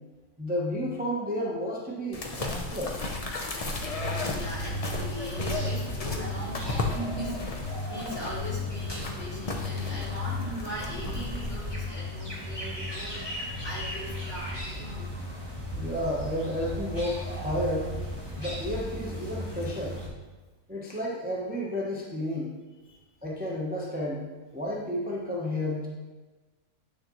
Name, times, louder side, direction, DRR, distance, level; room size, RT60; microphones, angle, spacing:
voice 1, 0.4-3.0 15.7-17.9 18.4-20.0 20.7-22.5 23.2-24.2 24.5-25.9, left 1 dB, 10° right, -4 dB, 0.8 m, -31 dB
sound 1, 2.1-11.7, left 3 dB, 35° left, 0.7 m, -35 dB
sound 2, 3.7-20.1, left 1 dB, 20° left, 1.7 m, -35 dB
voice 2, 4.3-15.1 22.8-23.0, equal, 60° left, -8 dB, 3.2 m, -39 dB
8.8 x 6.4 x 3.1 m, 1.3 s
omnidirectional pair, 1.4 m